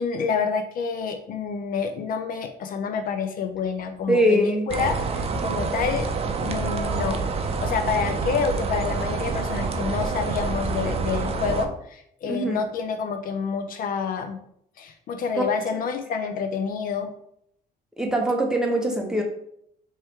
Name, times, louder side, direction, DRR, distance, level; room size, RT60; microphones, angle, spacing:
voice 1, 0.0-6.1 6.4-14.4 14.8-17.1, left 6 dB, 55° left, 7 dB, 0.5 m, -28 dB
voice 2, 4.1-4.7 12.2-12.6 16.2-16.3 18.0-19.2, right 1 dB, 5° right, 1 dB, 0.8 m, -22 dB
sound 1, 4.7-11.7, right 4 dB, 35° right, 0.5 m, -27 dB
4.3 x 3.0 x 3.5 m, 0.71 s
cardioid pair, 110°, 17 cm